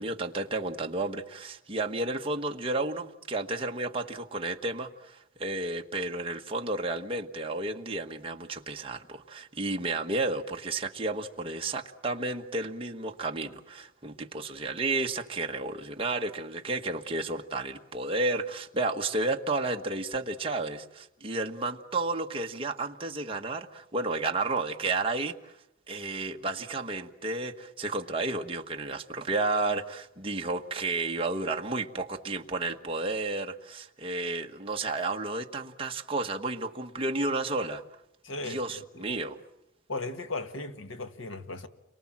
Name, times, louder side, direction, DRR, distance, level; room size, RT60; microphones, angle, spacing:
voice 1, 0.0-25.6 25.9-37.8 38.4-39.4, right 2 dB, 25° right, 1.3 m, -32 dB
voice 2, 38.2-38.6 39.0-39.1 39.9-41.7, left 2 dB, 70° left, 1.8 m, -36 dB
30.0 x 24.0 x 7.4 m
head